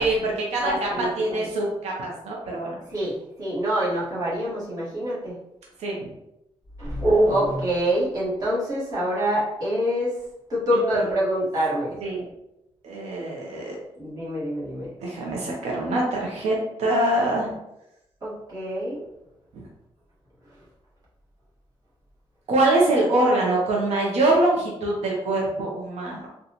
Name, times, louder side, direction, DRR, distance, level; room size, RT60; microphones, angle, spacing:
voice 1, 0.0-2.8 5.8-6.1 10.9-11.0 12.0-12.3 12.8-13.8 15.0-17.5 19.5-19.6 22.5-26.3, right 2 dB, 80° right, -2 dB, 0.7 m, -24 dB
voice 2, 0.6-1.4 2.9-5.4 6.8-10.2 10.5-12.0 14.0-14.9 18.2-19.0, right 1 dB, 35° right, -8 dB, 1.4 m, -25 dB
3.9 x 2.3 x 2.9 m, 0.86 s
cardioid pair, 135°, 11 cm